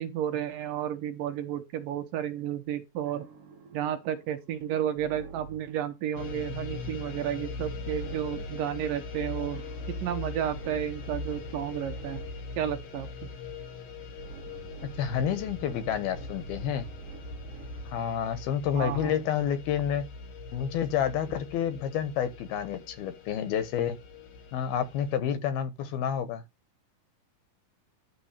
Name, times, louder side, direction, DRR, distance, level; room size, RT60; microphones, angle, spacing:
voice 1, 0.0-3.3 3.7-9.6 9.9-12.2 12.6-13.1 18.8-19.1, right 10 dB, 75° right, 2.4 m, -32 dB
sound 1, 3.1-5.8 7.8-8.7 9.5-12.5 14.2-18.0, right 5 dB, 50° right, 2.1 m, -46 dB
sound 2, 6.1-25.2, left 4 dB, 55° left, 2.2 m, -41 dB
voice 2, 15.0-16.9 17.9-20.1 20.5-24.0 24.5-26.4, left 9 dB, 85° left, 3.2 m, -29 dB
11.0 x 4.0 x 6.7 m
omnidirectional pair, 4.3 m